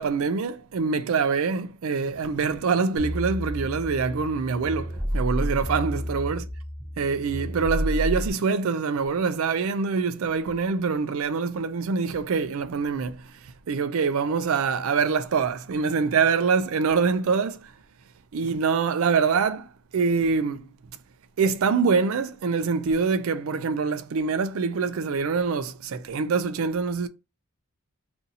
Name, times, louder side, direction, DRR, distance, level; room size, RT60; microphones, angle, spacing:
voice 1, 0.0-6.4 7.0-17.7 18.3-20.6 21.4-27.1, right 5 dB, 70° right, 0.4 m, -25 dB
sound 1, 3.0-8.3, equal, 20° right, 0.7 m, -30 dB
2.7 x 2.6 x 3.8 m
head